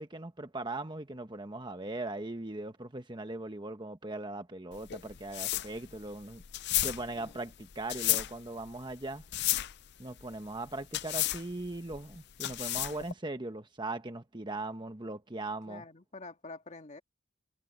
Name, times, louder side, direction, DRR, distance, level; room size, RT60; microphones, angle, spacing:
voice 1, 0.0-6.4 6.8-9.2 10.0-15.8, right 2 dB, 20° right, 1.2 m, -39 dB
sound 1, 4.7-13.1, left 15 dB, 55° left, 0.5 m, -33 dB
voice 2, 15.7-17.0, left 3 dB, 35° left, 2.0 m, -46 dB
head